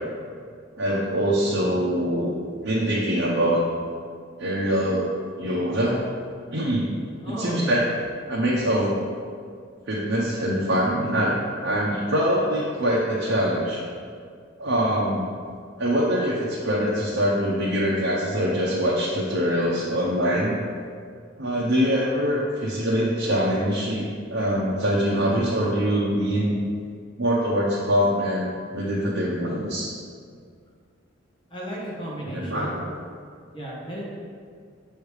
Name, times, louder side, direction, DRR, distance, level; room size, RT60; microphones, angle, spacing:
voice 1, 0.8-2.3 2.6-3.6 4.4-5.1 5.4-6.0 6.5-6.9 7.2-7.8 8.3-8.9 9.9-11.3 11.6-13.8 14.6-15.3 15.8-20.5 21.4-26.6 27.2-29.9 32.3-32.8, equal, 70° right, -6 dB, 0.9 m, -23 dB
voice 2, 7.2-7.8 31.5-32.8 33.5-34.0, right 1 dB, 25° left, -6 dB, 1.4 m, -33 dB
6.4 x 3.4 x 4.8 m, 2.1 s
head